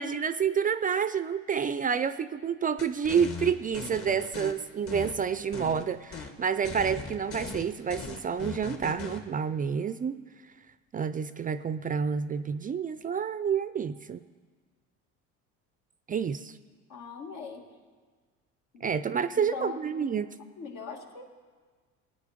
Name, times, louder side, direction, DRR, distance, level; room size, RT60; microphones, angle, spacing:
voice 1, 0.0-10.2 10.9-14.2 16.1-16.6 18.8-20.3, right 7 dB, 25° right, 12 dB, 0.4 m, -29 dB
sound 1, 2.8-4.5 4.9-5.8 6.1-6.3 6.6-9.2, left 4 dB, 40° left, 1.7 m, -39 dB
voice 2, 16.9-17.7 18.7-18.9 19.3-20.2 20.6-21.3, left 5 dB, 70° left, 2 dB, 2.1 m, -41 dB
20.5 x 9.1 x 5.0 m, 1.5 s
supercardioid pair, 105°, 34 cm